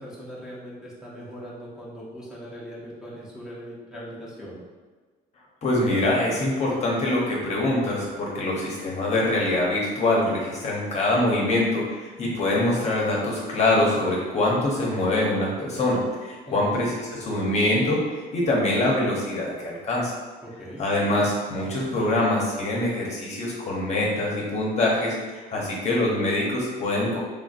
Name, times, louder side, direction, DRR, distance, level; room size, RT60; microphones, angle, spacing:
voice 1, 0.0-4.6 16.5-16.8 20.4-20.8, equal, 5° right, -8 dB, 0.7 m, -40 dB
voice 2, 5.6-18.0 18.3-20.1 20.8-27.2, left 1 dB, 40° left, -3 dB, 0.8 m, -24 dB
3.4 x 2.5 x 2.4 m, 1.4 s
cardioid pair, 110°, 17 cm